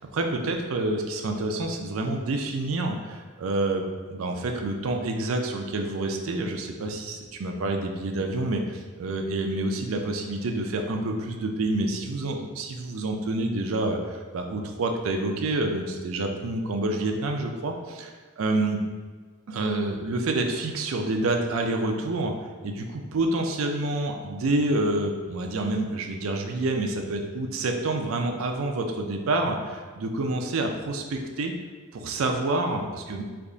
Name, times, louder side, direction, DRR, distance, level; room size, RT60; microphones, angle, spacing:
voice 1, 0.1-18.8 19.5-22.3 22.6-31.5 31.9-33.2, right 2 dB, 75° right, 3 dB, 0.5 m, -28 dB
3.4 x 2.4 x 3.8 m, 1.5 s
head